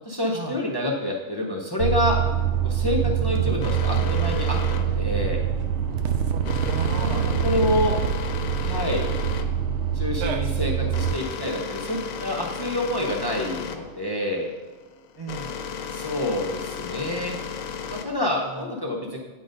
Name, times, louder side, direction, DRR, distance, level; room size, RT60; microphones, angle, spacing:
voice 1, 0.0-2.2 2.6-5.4 6.8-8.0 8.6-9.1 9.9-14.5 15.9-17.4 17.9-19.3, left 1 dB, 25° left, -1 dB, 0.5 m, -27 dB
sound 1, 1.8-11.1, right 8 dB, 65° right, 0.8 m, -25 dB
sound 2, 3.0-5.6, right 8 dB, 85° right, 1.2 m, -36 dB
sound 3, 3.6-18.6, left 7 dB, 80° left, 1.1 m, -35 dB
voice 2, 15.2-15.6 18.5-18.7, right 3 dB, 35° right, -1 dB, 0.4 m, -38 dB
9.0 x 4.0 x 5.2 m, 1.2 s
omnidirectional pair, 1.4 m